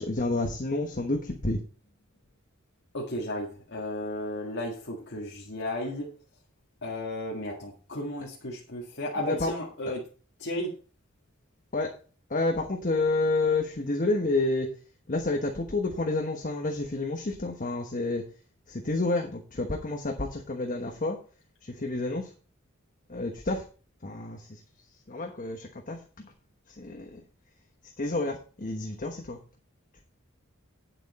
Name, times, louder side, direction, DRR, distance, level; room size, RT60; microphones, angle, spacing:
voice 1, 0.0-1.6 9.2-9.5 11.7-11.9 12.3-14.7 15.1-18.3 18.7-21.2 21.6-22.3 23.1-23.7 24.0-24.6 25.1-26.3 26.7-27.2 27.8-29.4, left 2 dB, 40° left, 3 dB, 1.2 m, -29 dB
voice 2, 2.9-6.2 6.8-10.1 10.4-10.8, left 1 dB, 55° left, -3 dB, 1.9 m, -34 dB
9.0 x 7.6 x 4.2 m, 0.38 s
head